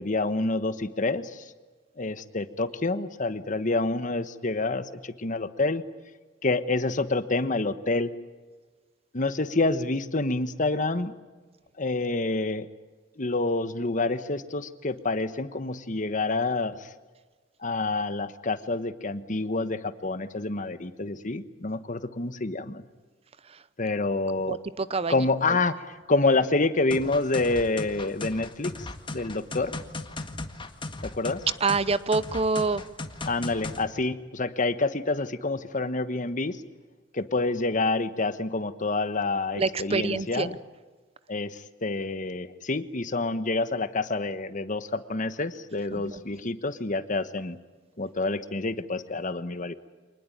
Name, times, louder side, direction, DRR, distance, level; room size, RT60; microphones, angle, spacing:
voice 1, 0.0-1.5 2.0-5.8 6.4-8.1 9.1-11.1 11.8-12.7 13.2-16.9 17.6-22.8 23.8-24.6 25.1-29.8 31.0-31.4 33.3-36.6 37.1-40.5 41.3-47.6 48.0-49.7, left 3 dB, 45° left, 1.2 m, -28 dB
voice 2, 24.5-25.6 31.6-32.8 39.6-40.6 46.0-46.2, right 4 dB, 35° right, 0.7 m, -27 dB
sound 1, 26.9-33.9, left 2 dB, 30° left, 1.7 m, -37 dB
25.5 x 20.0 x 8.8 m
head